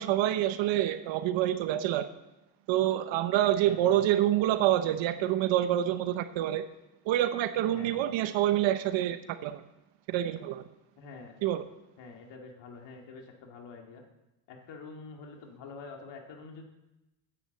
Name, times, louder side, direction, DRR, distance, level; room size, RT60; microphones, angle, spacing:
voice 1, 0.0-2.1 2.7-6.6 7.1-9.6 10.1-10.6 11.4-11.6, right 12 dB, 80° right, 10 dB, 0.9 m, -27 dB
voice 2, 3.6-3.9 7.7-8.1 11.0-11.4 12.0-14.0 14.5-16.6, left 4 dB, 70° left, 1 dB, 2.2 m, -47 dB
10.0 x 9.4 x 7.6 m, 0.97 s
cardioid pair, 135°, 44 cm